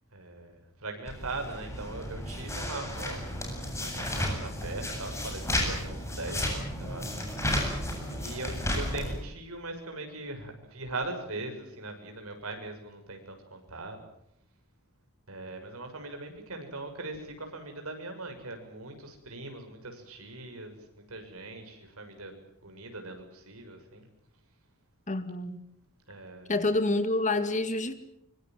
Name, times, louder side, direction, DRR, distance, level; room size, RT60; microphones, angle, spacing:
voice 1, 0.1-3.2 3.8-7.1 8.1-14.0 15.3-22.3 22.6-24.1 26.1-26.6, right 2 dB, 70° right, 6.8 m, -40 dB
sound 1, 1.1-9.1, left 1 dB, 15° left, 8.0 m, -33 dB
voice 2, 25.1-25.6 26.5-27.9, left 2 dB, 35° left, 2.1 m, -27 dB
25.0 x 24.5 x 7.7 m
head